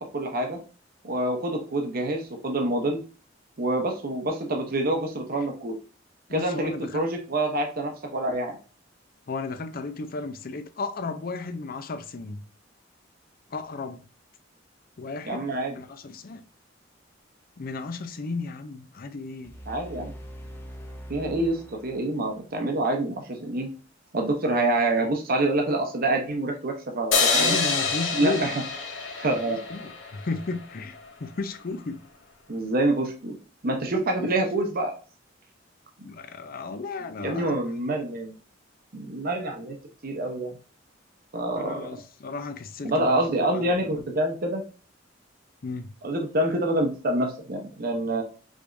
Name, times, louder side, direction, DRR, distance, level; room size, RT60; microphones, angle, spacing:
voice 1, 0.1-0.6 1.0-3.0 3.6-5.8 6.3-8.6 15.2-15.7 19.7-20.1 21.1-23.7 24.1-27.6 28.1-28.5 29.2-29.6 32.5-33.4 33.6-34.9 37.2-38.4 38.9-39.8 40.0-40.5 41.3-42.0 42.8-44.6 46.0-48.2, right 1 dB, 50° right, 0.8 m, -26 dB
voice 2, 6.3-7.1 9.3-12.4 13.5-14.0 15.0-15.4 15.7-16.4 17.6-19.5 25.0-25.1 27.3-28.4 29.7-32.0 34.2-34.3 36.0-37.9 41.6-43.2 43.5-44.0 45.6-45.9, left 3 dB, 50° left, 0.5 m, -34 dB
sound 1, 19.4-22.5, equal, 10° left, 0.6 m, -42 dB
sound 2, 27.1-30.4, left 4 dB, 80° left, 1.2 m, -26 dB
5.0 x 3.5 x 2.5 m
head